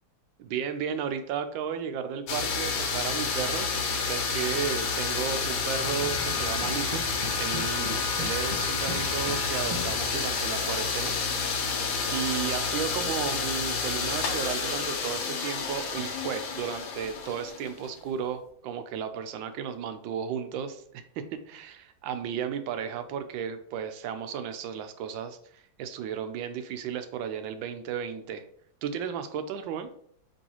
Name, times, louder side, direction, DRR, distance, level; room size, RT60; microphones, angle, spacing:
voice 1, 0.4-3.7 4.1-7.0 7.4-11.2 12.1-28.4 28.8-29.9, right 8 dB, 80° right, 9 dB, 1.3 m, -34 dB
sound 1, 2.3-18.0, left 5 dB, 85° left, 1.5 m, -29 dB
sound 2, 5.8-10.4, left 2 dB, 40° right, 0.4 m, -40 dB
5.4 x 3.1 x 2.9 m, 0.64 s
omnidirectional pair, 2.1 m